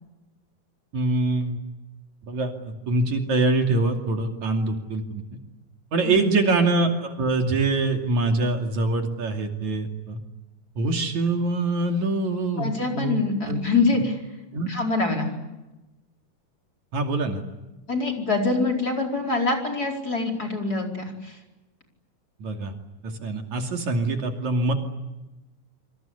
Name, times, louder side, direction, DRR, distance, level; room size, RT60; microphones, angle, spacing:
voice 1, 0.9-1.6 2.3-5.2 5.9-10.2 10.8-13.2 13.5-13.6 13.9-14.0 14.5-14.7 16.9-17.4 22.4-22.7 23.0-24.7, right 2 dB, 60° right, 4 dB, 3.9 m, -24 dB
voice 2, 12.6-14.2 14.7-15.3 17.9-21.4, left 3 dB, 25° left, 6 dB, 5.0 m, -25 dB
27.5 x 26.0 x 8.4 m, 1.0 s
omnidirectional pair, 3.7 m